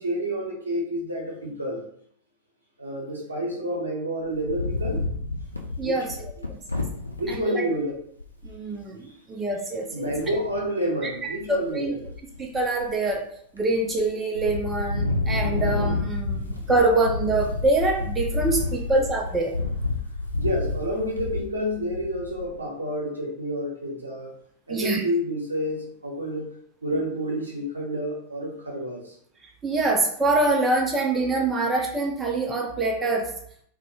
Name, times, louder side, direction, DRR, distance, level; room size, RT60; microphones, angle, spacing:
voice 1, 0.0-1.8 2.8-5.0 5.8-6.1 6.4-6.5 7.2-7.9 9.0-9.1 9.9-12.0 20.3-24.3 24.7-26.5 26.8-29.1, equal, 80° right, -2 dB, 0.7 m, -29 dB
Wind, 4.3-7.4 7.9-8.0 8.2-8.6 10.0-10.6 11.1-11.6 12.0-13.1 13.6-14.1 14.4-22.6, left 3 dB, 85° left, 0.3 m, -29 dB
voice 2, 5.8-6.2 7.3-7.7 8.4-10.1 11.0-11.9 12.4-13.2 13.5-19.5 24.7-25.0 29.6-33.3, right 2 dB, 20° right, 1 dB, 0.4 m, -25 dB
2.2 x 2.0 x 2.9 m, 0.64 s
figure-of-eight pair, 90°, 0 cm